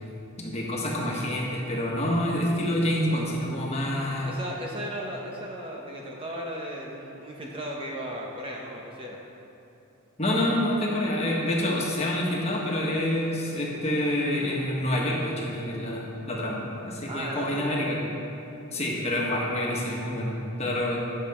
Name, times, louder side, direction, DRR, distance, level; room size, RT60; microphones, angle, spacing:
voice 1, 0.4-4.3 10.2-18.0 18.7-21.0, left 1 dB, 30° left, -4 dB, 1.4 m, -27 dB
voice 2, 4.2-9.2 17.1-18.0, equal, 25° right, -1 dB, 0.8 m, -36 dB
9.8 x 7.1 x 4.3 m, 3.0 s
head